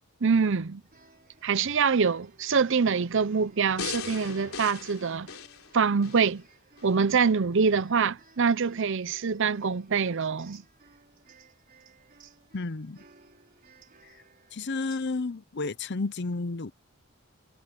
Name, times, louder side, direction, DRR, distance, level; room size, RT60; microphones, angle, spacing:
voice 1, 0.2-0.8 1.4-5.3 5.7-6.4 6.8-10.6, right 5 dB, 60° right, 0.6 m, -25 dB
sound 1, 0.8-15.0, right 4 dB, 40° right, 6.0 m, -59 dB
sound 2, 3.8-6.3 6.8-6.9, left 6 dB, 75° left, 3.4 m, -38 dB
voice 2, 12.5-13.0 14.0-14.1 14.5-16.7, left 3 dB, 50° left, 0.7 m, -32 dB
head